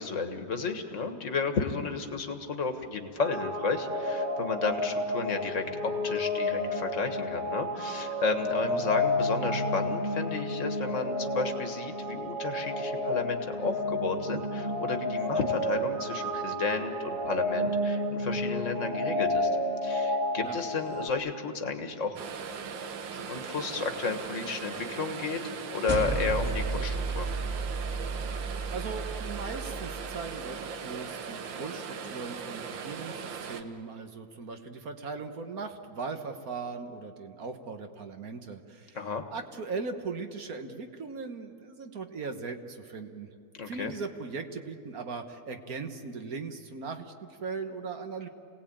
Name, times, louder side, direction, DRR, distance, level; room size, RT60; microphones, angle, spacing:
voice 1, 0.0-19.5 19.8-22.2 23.1-27.3 38.9-39.2 43.6-43.9, left 4 dB, 45° left, 6 dB, 1.8 m, -32 dB
sound 1, 3.2-21.1, left 1 dB, 30° right, 1.4 m, -31 dB
voice 2, 8.5-8.8 20.4-20.6 28.7-39.0 39.3-43.3 43.7-48.3, right 4 dB, 55° right, 6 dB, 1.6 m, -39 dB
sound 2, 22.2-33.6, right 6 dB, 85° right, 1.8 m, -39 dB
sound 3, 25.9-30.5, right 3 dB, 15° right, 1.8 m, -33 dB
28.0 x 18.5 x 8.7 m, 2.5 s
omnidirectional pair, 2.0 m